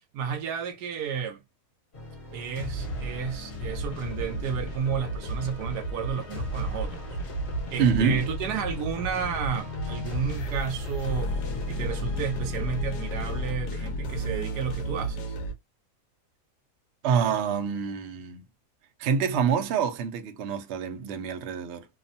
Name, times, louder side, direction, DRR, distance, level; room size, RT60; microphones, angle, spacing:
voice 1, 0.1-1.4 2.3-7.1 7.7-11.4 11.7-15.3, right 7 dB, 85° right, 1.1 m, -32 dB
sound 1, 1.9-13.5, left 1 dB, 45° left, 1.3 m, -37 dB
sound 2, 3.6-15.5, right 1 dB, 85° left, 1.2 m, -33 dB
voice 2, 7.8-8.3 17.0-18.4 19.0-21.9, right 6 dB, 65° right, 0.6 m, -26 dB
2.9 x 2.0 x 2.6 m
omnidirectional pair, 1.7 m